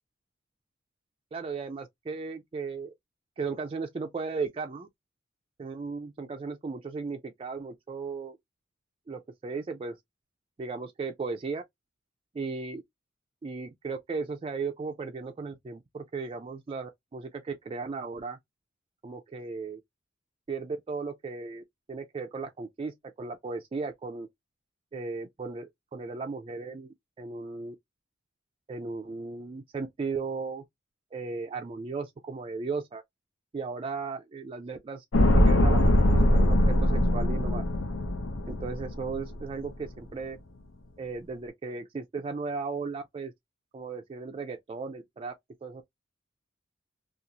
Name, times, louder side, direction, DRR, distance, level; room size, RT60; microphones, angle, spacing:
voice 1, 1.3-2.9 3.4-4.9 5.6-8.4 9.1-10.0 10.6-11.6 12.3-12.8 13.4-18.4 19.0-19.8 20.5-21.6 21.9-24.3 24.9-27.7 28.7-30.6 31.1-33.0 33.5-35.0 35.3-37.7 38.5-40.4 41.0-43.3 43.7-45.3 45.6-45.8, right 4 dB, 30° right, 0.3 m, -36 dB
sound 1, 35.1-39.4 39.7-39.8, left 1 dB, 85° left, 0.6 m, -22 dB
2.5 x 2.4 x 2.7 m
head